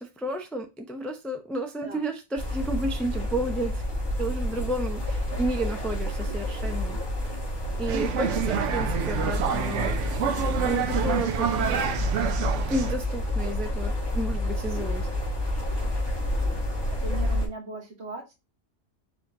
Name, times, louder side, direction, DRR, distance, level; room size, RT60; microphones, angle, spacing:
voice 1, 0.0-3.8 4.2-7.0 7.8-10.1 10.6-11.9 12.7-15.1, right 1 dB, ahead, 0.4 m, -32 dB
sound 1, 2.4-17.5, left 1 dB, 20° left, 1.5 m, -29 dB
sound 2, 7.9-12.9, right 7 dB, 90° right, 1.0 m, -28 dB
voice 2, 8.0-8.4 16.9-18.3, right 4 dB, 65° right, 1.6 m, -38 dB
4.8 x 3.0 x 3.7 m
omnidirectional pair, 1.2 m